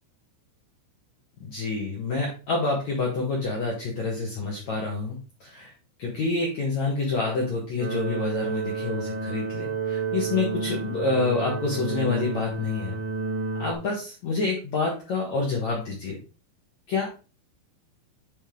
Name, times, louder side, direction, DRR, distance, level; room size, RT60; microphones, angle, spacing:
voice 1, 1.4-5.7 6.0-12.9 13.6-16.2 16.9-17.1, left 3 dB, 75° left, -4 dB, 1.6 m, -28 dB
sound 1, 7.8-13.7, right 4 dB, 75° right, 3.4 m, -30 dB
9.8 x 3.6 x 3.8 m, 0.33 s
omnidirectional pair, 5.9 m